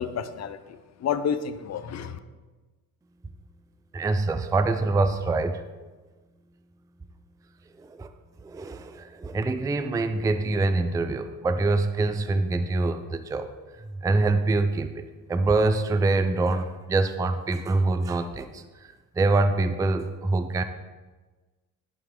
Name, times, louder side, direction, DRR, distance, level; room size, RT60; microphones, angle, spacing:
voice 1, 0.0-2.2, left 7 dB, 45° left, 12 dB, 0.5 m, -30 dB
voice 2, 3.9-5.6 7.8-8.1 8.4-13.5 14.0-20.6, right 3 dB, 10° right, 9 dB, 0.3 m, -25 dB
11.0 x 4.6 x 3.7 m, 1.3 s
cardioid pair, 100°, 38 cm